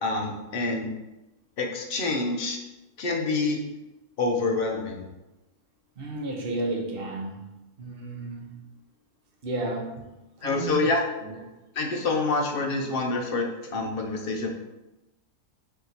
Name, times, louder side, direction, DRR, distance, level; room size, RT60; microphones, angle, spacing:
voice 1, 0.0-0.9 1.6-2.6 3.0-3.6 4.2-5.1 10.4-11.0 11.8-14.5, left 3 dB, 60° left, 1 dB, 0.6 m, -27 dB
voice 2, 6.0-7.5 7.8-8.7 9.4-10.0 10.4-10.9 11.2-11.4, right 2 dB, 45° right, -1 dB, 0.9 m, -33 dB
4.6 x 2.7 x 4.0 m, 1.0 s
omnidirectional pair, 1.6 m